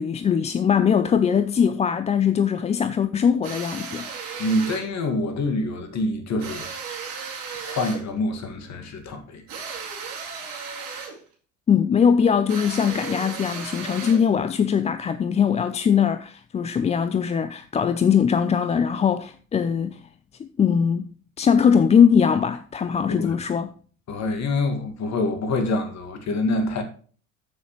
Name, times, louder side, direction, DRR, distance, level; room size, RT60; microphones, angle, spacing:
voice 1, 0.0-4.1 11.7-20.0 20.4-21.1 21.4-23.7, left 7 dB, 15° left, 0.4 m, -21 dB
sound 1, 3.4-4.9 6.4-8.1 9.5-11.2 12.5-14.3, right 5 dB, 55° right, 3.9 m, -35 dB
voice 2, 4.4-6.7 7.6-9.4 23.1-23.3 24.1-26.8, left 2 dB, 40° left, 2.0 m, -26 dB
14.0 x 6.3 x 3.1 m
figure-of-eight pair, 65°, 41 cm